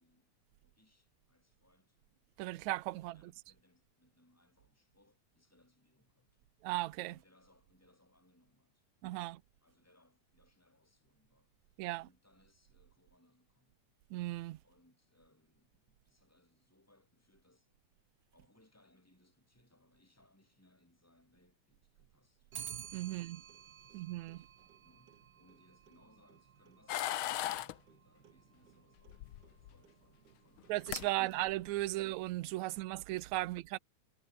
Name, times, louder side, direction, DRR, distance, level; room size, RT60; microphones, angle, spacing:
voice 1, 0.0-2.0 3.0-6.5 7.1-8.9 9.2-13.8 14.6-17.7 18.3-22.5 23.1-24.5 24.8-31.4 31.9-32.1 32.6-32.8 33.4-33.6, left 1 dB, 5° left, 7.5 m, -70 dB
voice 2, 2.4-3.2 6.6-7.2 9.0-9.4 11.8-12.1 14.1-14.6 22.9-23.4 23.9-24.5 30.7-33.8, right 18 dB, 80° right, 2.1 m, -36 dB
Clock, 22.5-31.9, right 8 dB, 50° right, 1.5 m, -54 dB
sound 1, 26.9-27.7 29.1-29.8 30.6-30.7 30.9-31.1 31.5-31.8, left 14 dB, 75° left, 1.2 m, -37 dB
omnidirectional pair, 3.3 m